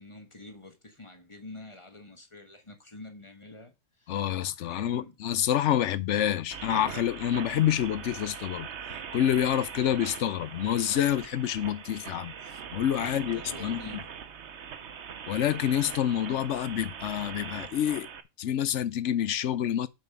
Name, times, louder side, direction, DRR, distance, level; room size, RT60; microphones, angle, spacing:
voice 1, 0.0-4.2 4.6-5.2 13.0-14.1, left 2 dB, 20° left, 1.3 m, -47 dB
voice 2, 4.1-8.7 9.1-12.3 12.7-14.0 15.3-18.1 18.4-19.9, left 10 dB, 65° left, 0.8 m, -27 dB
sound 1, 6.5-18.2, right 7 dB, 55° right, 1.1 m, -41 dB
7.6 x 5.3 x 6.0 m
omnidirectional pair, 1.5 m